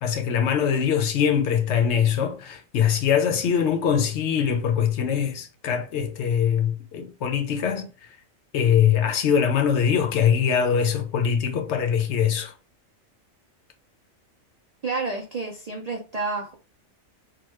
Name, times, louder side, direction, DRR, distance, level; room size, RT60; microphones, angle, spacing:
voice 1, 0.0-8.1 8.5-12.5, left 8 dB, 65° left, 0.8 m, -22 dB
voice 2, 14.8-16.5, right 3 dB, 80° right, 0.3 m, -29 dB
2.9 x 2.2 x 3.1 m
omnidirectional pair, 1.4 m